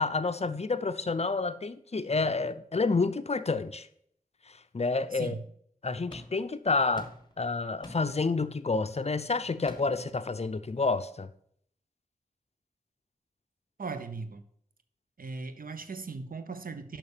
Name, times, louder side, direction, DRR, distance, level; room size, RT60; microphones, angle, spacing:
voice 1, 0.0-3.9 4.5-5.4 5.8-7.1 7.4-11.3, left 3 dB, 45° left, 0.6 m, -29 dB
sound 1, 6.1-6.5 7.0-7.4 7.8-8.2 9.7-10.1, left 1 dB, 30° left, 1.6 m, -46 dB
voice 2, 13.8-14.4 15.2-17.0, right 4 dB, 75° right, 0.9 m, -38 dB
6.9 x 5.9 x 6.7 m
cardioid pair, 45°, 15 cm